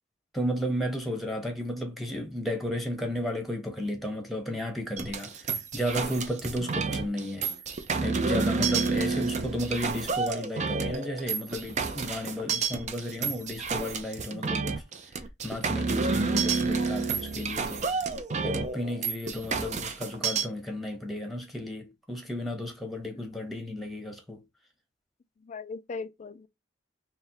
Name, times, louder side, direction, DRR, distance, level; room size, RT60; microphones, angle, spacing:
voice 1, 0.3-5.4 5.7-7.5 8.0-14.8 15.4-17.9 18.4-24.4, left 1 dB, ahead, 1.0 m, -33 dB
sound 1, 5.0-20.5, right 4 dB, 40° right, 0.5 m, -30 dB
voice 2, 25.4-26.5, left 4 dB, 40° left, 0.3 m, -39 dB
3.5 x 2.2 x 4.3 m
head